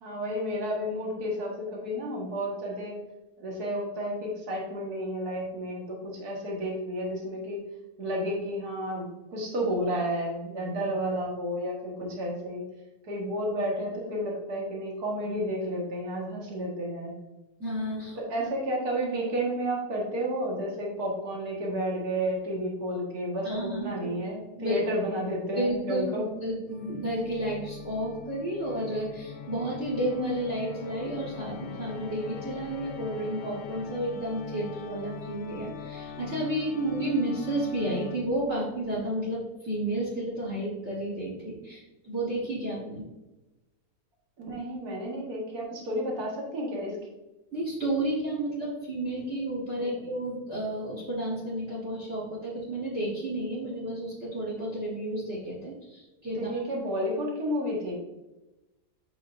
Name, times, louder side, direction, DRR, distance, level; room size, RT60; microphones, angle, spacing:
voice 1, 0.0-2.9 3.4-7.6 8.0-12.6 13.0-17.2 18.3-26.3 44.4-47.0 49.8-50.0 56.3-57.9, equal, 70° right, -3 dB, 2.1 m, -31 dB
voice 2, 17.6-18.2 23.4-23.9 24.2-24.8 25.6-43.0 47.5-56.6, right 1 dB, 45° right, -3 dB, 1.8 m, -31 dB
Organ, 26.7-38.5, left 6 dB, 65° left, 0.9 m, -42 dB
7.8 x 5.3 x 2.6 m, 1.0 s
omnidirectional pair, 1.7 m